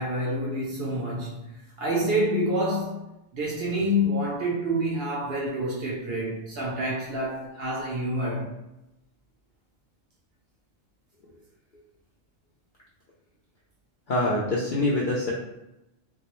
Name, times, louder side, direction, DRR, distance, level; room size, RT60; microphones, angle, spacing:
voice 1, 0.0-1.4 1.8-3.1 3.3-8.5, equal, 65° right, 0.6 m, -27 dB
voice 2, 14.1-15.3, left 1 dB, 80° left, 0.4 m, -25 dB
2.3 x 2.1 x 2.9 m
omnidirectional pair, 1.4 m